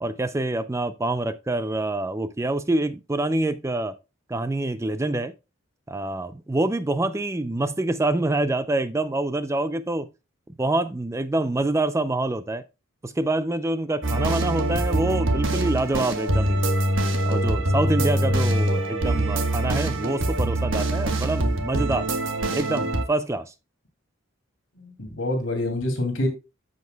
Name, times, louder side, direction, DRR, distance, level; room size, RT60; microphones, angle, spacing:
voice 1, 0.0-4.0 4.3-5.3 5.9-10.1 10.6-12.6 13.0-16.6 17.3-22.1 22.5-23.5, right 2 dB, 15° right, 0.4 m, -26 dB
sound 1, 14.0-23.1, right 1 dB, 70° right, 1.3 m, -24 dB
voice 2, 24.7-26.3, left 1 dB, 70° left, 2.8 m, -26 dB
13.5 x 5.2 x 2.2 m
head